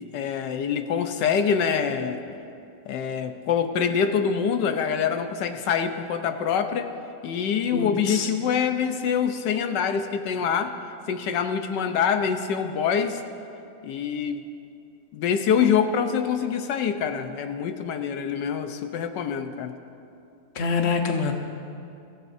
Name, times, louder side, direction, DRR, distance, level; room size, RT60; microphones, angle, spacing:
voice 1, 0.1-2.2 2.9-6.9 7.2-10.8 11.1-13.2 13.8-14.4 15.1-19.7, left 7 dB, 85° left, 8 dB, 1.4 m, -25 dB
voice 2, 7.7-8.3 20.5-21.3, left 5 dB, 45° left, 3 dB, 1.2 m, -25 dB
23.5 x 15.5 x 2.7 m, 2.6 s
omnidirectional pair, 1.8 m